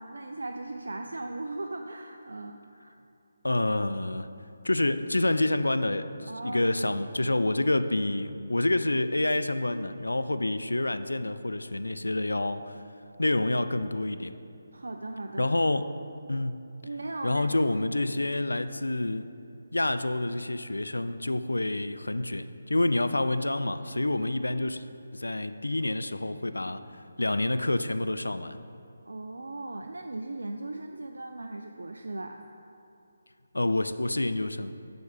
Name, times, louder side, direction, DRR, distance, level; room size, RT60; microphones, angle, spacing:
voice 1, 0.0-2.9 6.3-6.7 14.7-15.5 16.8-17.5 29.1-32.4, right 2 dB, 65° right, 4 dB, 0.3 m, -38 dB
voice 2, 3.4-4.3 4.6-12.8 13.2-14.4 15.4-15.9 16.3-16.6 17.2-19.3 19.7-24.8 25.1-28.6 33.5-34.7, left 2 dB, 75° left, 11 dB, 0.3 m, -28 dB
7.0 x 6.2 x 3.5 m, 2.8 s
figure-of-eight pair, 150°, 0 cm